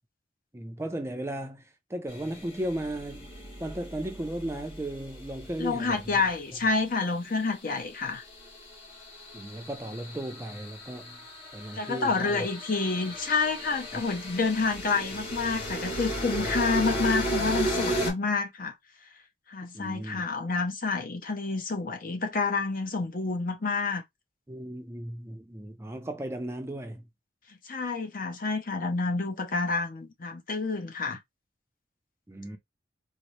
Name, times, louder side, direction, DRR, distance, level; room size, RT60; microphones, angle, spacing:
voice 1, 0.5-3.3 3.6-6.2 9.3-11.2 11.5-12.5 13.9-14.0 19.7-20.2 24.5-27.1 31.1-31.2 32.3-32.6, right 1 dB, 15° right, 0.5 m, -36 dB
sound 1, 2.1-6.4 7.9-18.1, right 1 dB, 35° left, 2.6 m, -35 dB
voice 2, 5.6-8.2 11.7-18.7 19.5-24.0 27.6-31.2, left 4 dB, 50° left, 0.7 m, -29 dB
4.0 x 2.0 x 3.1 m
head